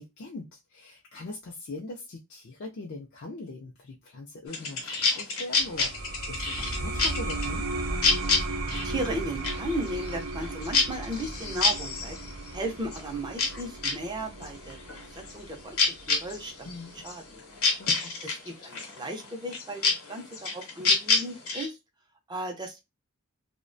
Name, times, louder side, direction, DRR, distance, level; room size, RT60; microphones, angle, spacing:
voice 1, 0.0-7.7 16.6-17.0 17.8-18.1, left 2 dB, 50° left, 0.4 m, -41 dB
sound 1, 4.5-14.0 14.3-21.7, left 3 dB, 70° left, 0.9 m, -29 dB
sound 2, 5.5-16.7, right 2 dB, 70° right, 0.5 m, -36 dB
voice 2, 8.7-12.2 12.5-14.8 15.1-15.8 16.1-16.7 17.0-17.4 18.2-21.8 22.3-22.8, right 1 dB, 20° right, 0.5 m, -35 dB
2.3 x 2.1 x 2.5 m
head